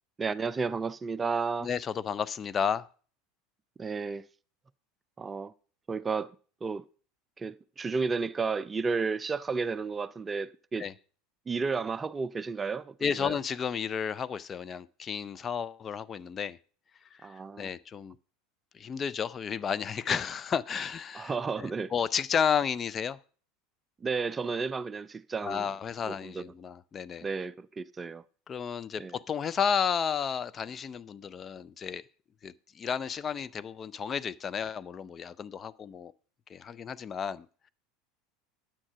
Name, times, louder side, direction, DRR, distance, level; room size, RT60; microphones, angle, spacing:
voice 1, 0.2-1.7 3.8-4.3 5.2-5.5 5.9-6.3 6.6-6.8 7.4-10.8 11.5-12.9 13.2-13.4 17.2-17.7 21.1-21.9 24.0-25.7 26.1-26.4 27.2-28.2 29.0-29.1, right 4 dB, 20° right, 0.5 m, -32 dB
voice 2, 1.6-2.9 10.8-10.9 13.0-16.6 17.1-18.2 18.7-23.2 25.4-27.3 28.5-32.0 32.4-36.1 36.5-37.7, left 7 dB, 30° left, 0.5 m, -32 dB
9.8 x 8.8 x 5.8 m
figure-of-eight pair, 75°, 0 cm